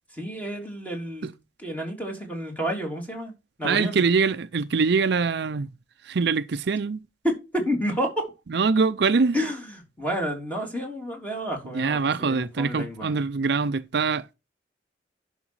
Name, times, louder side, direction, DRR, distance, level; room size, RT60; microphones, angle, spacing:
voice 1, 0.1-1.3 1.6-3.3 3.6-4.0 7.2-8.3 9.3-13.2, equal, 10° left, 3.4 m, -30 dB
voice 2, 3.6-5.7 6.1-7.0 8.5-9.4 11.7-14.3, right 4 dB, 65° right, 0.5 m, -23 dB
11.0 x 5.9 x 4.8 m
head